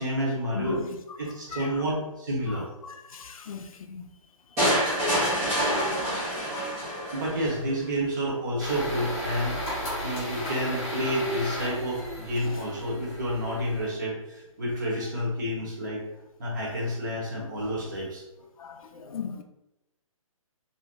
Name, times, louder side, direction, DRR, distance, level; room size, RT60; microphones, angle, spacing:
voice 1, 0.0-0.8 1.2-2.7 7.1-9.6 10.0-16.0 16.4-18.2, equal, 35° right, 0.9 m, -29 dB
voice 2, 0.5-1.9 2.5-4.1 18.0-18.1 18.6-19.4, left 6 dB, 75° left, 0.4 m, -38 dB
sound 1, 4.6-7.6, equal, 5° right, 0.4 m, -26 dB
sound 2, 8.6-13.9, equal, 15° left, 0.8 m, -35 dB
2.6 x 2.1 x 3.5 m
hypercardioid pair, 175°, 18 cm